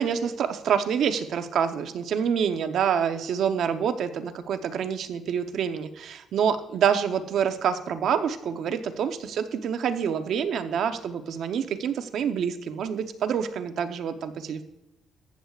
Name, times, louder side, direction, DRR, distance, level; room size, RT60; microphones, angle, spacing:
voice 1, 0.0-14.6, right 7 dB, 70° right, 8 dB, 0.8 m, -27 dB
14.5 x 8.2 x 2.4 m, 0.92 s
cardioid pair, 90°, 0 cm